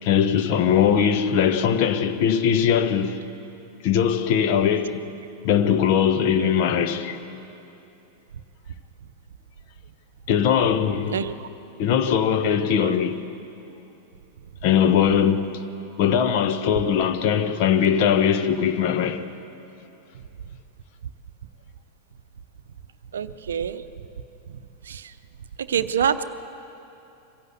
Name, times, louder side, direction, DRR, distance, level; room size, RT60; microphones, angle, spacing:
voice 1, 0.0-3.2 3.8-5.1 5.4-7.2 10.3-11.2 11.8-13.2 14.6-15.5 16.0-19.2, left 8 dB, 45° left, 1.1 m, -20 dB
voice 2, 23.1-23.8 24.9-25.0 25.7-26.2, right 8 dB, 65° right, 0.6 m, -25 dB
24.0 x 16.5 x 8.1 m
figure-of-eight pair, 90°, 0 cm